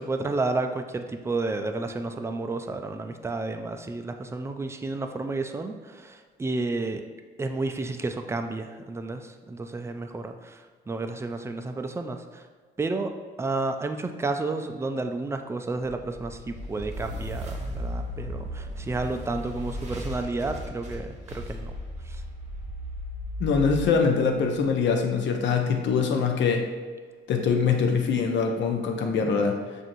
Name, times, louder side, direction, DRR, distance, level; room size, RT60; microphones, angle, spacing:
voice 1, 0.0-7.0 7.4-12.5 12.8-13.1 13.4-21.7 22.1-22.2, right 3 dB, 15° right, 6 dB, 0.3 m, -31 dB
sound 1, 15.8-24.9, equal, 35° right, 0.9 m, -36 dB
voice 2, 23.4-26.7 27.3-29.6, left 5 dB, 65° left, 3 dB, 0.6 m, -23 dB
5.8 x 2.6 x 2.6 m, 1.5 s
cardioid pair, 90°, 20 cm